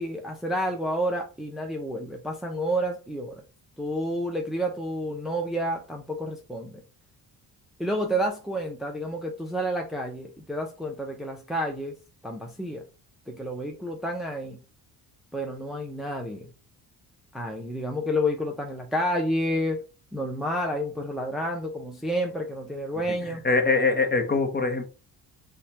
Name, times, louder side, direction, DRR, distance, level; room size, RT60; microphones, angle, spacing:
voice 1, 0.0-3.4 3.8-6.8 7.8-11.9 12.2-12.8 13.3-14.6 15.3-16.5 17.3-19.8 20.1-23.4, equal, ahead, 0.7 m, -30 dB
voice 2, 23.2-24.8, left 3 dB, 25° left, 1.0 m, -23 dB
5.5 x 2.5 x 3.4 m
cardioid pair, 110°, 38 cm